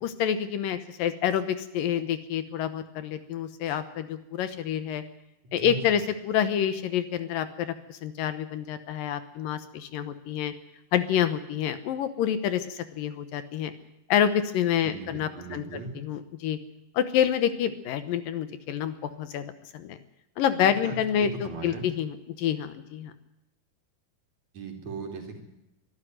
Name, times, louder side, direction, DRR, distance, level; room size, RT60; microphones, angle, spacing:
voice 1, 0.0-5.0 5.5-10.5 10.9-13.7 14.1-16.6 16.9-19.4 19.7-20.0 20.4-23.1, left 9 dB, 70° left, 11 dB, 2.6 m, -28 dB
voice 2, 5.6-6.0 14.8-16.0 20.8-21.9 24.5-25.4, right 3 dB, 50° right, 3 dB, 4.1 m, -38 dB
23.5 x 12.5 x 9.3 m, 0.91 s
omnidirectional pair, 4.3 m